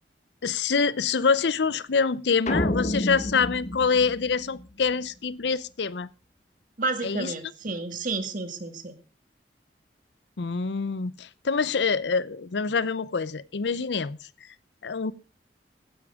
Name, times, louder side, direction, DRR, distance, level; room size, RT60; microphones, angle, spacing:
voice 1, 0.4-6.1 7.0-7.3 10.4-14.2 14.8-15.1, left 5 dB, 80° left, 0.6 m, -25 dB
sound 1, 2.5-4.9, left 1 dB, 40° left, 1.3 m, -29 dB
voice 2, 6.8-8.9, right 3 dB, 50° right, 1.8 m, -31 dB
15.5 x 10.0 x 3.6 m
head